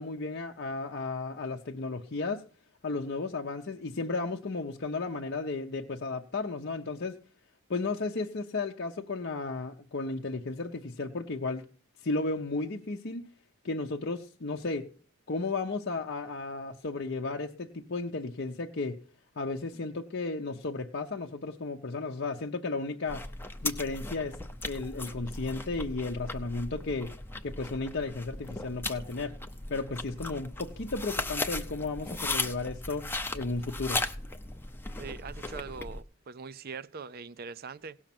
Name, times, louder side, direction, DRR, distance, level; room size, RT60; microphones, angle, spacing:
voice 1, 0.0-2.4 2.8-7.2 7.7-11.6 12.0-13.2 13.6-14.9 15.3-19.0 19.4-23.2 23.6-24.4 24.6-27.1 27.4-29.3 29.7-33.1 33.3-34.0, left 3 dB, 50° left, 0.7 m, -34 dB
sound 1, 23.1-36.0, left 2 dB, 10° left, 0.7 m, -37 dB
voice 2, 35.0-38.0, right 5 dB, 45° right, 0.5 m, -42 dB
17.5 x 6.4 x 5.9 m
head